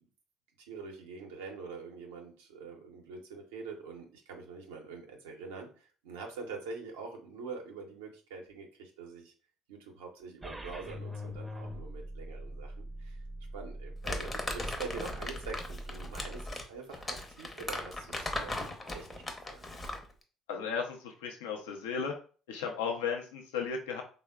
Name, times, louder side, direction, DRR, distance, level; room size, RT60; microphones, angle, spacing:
voice 1, 0.6-9.3 9.7-13.2 13.5-19.7, right 4 dB, 90° right, 2 dB, 0.6 m, -45 dB
sound 1, 10.4-16.4, equal, 15° right, 0.5 m, -43 dB
Crumpling crinkling, 14.0-20.1, left 2 dB, 25° left, 0.6 m, -38 dB
voice 2, 20.5-22.1 22.5-24.0, left 6 dB, 85° left, 3 dB, 0.4 m, -35 dB
3.4 x 2.1 x 2.2 m, 0.38 s
hypercardioid pair, 65°, 0 cm